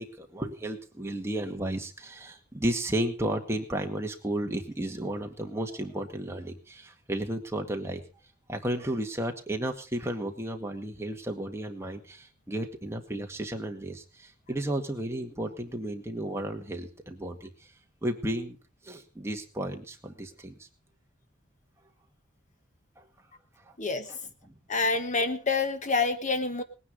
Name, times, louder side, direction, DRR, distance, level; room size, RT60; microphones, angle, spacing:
voice 1, 0.0-8.0 8.5-17.5 18.0-18.6 18.8-20.7 23.0-23.1 23.7-23.8 24.1-24.2 24.4-24.5, right 1 dB, 15° right, 3 dB, 1.9 m, -33 dB
voice 2, 23.8-24.1 24.7-26.6, left 3 dB, 40° left, 9 dB, 1.3 m, -27 dB
20.0 x 9.7 x 5.3 m, 0.34 s
head